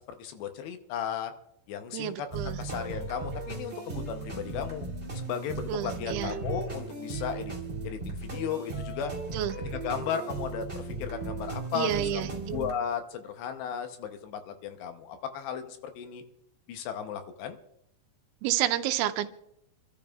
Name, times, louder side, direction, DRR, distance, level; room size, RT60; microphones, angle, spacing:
voice 1, 0.1-1.3 1.7-4.9 5.1-7.5 7.8-9.1 9.7-16.2 16.7-17.6, left 8 dB, 75° left, 7 dB, 2.7 m, -35 dB
voice 2, 1.9-2.6 5.7-6.3 9.3-9.5 11.7-12.6 18.4-19.3, right 12 dB, 85° right, 10 dB, 3.0 m, -30 dB
sound 1, 2.3-12.7, right 3 dB, 20° right, 1.8 m, -36 dB
29.0 x 12.5 x 2.4 m, 0.80 s
omnidirectional pair, 5.4 m